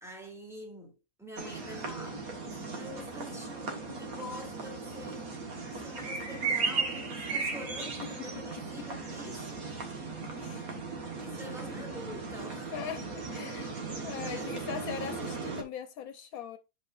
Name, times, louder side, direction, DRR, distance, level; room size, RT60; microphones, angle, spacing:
voice 1, 0.0-5.3 5.6-10.2 11.2-12.7 13.5-13.8 14.2-14.6, left 1 dB, ahead, 2.1 m, -46 dB
sound 1, 1.4-15.6, right 4 dB, 80° right, 1.9 m, -37 dB
voice 2, 12.7-13.7 14.0-16.6, left 8 dB, 90° left, 1.2 m, -40 dB
7.7 x 5.0 x 2.5 m
omnidirectional pair, 1.5 m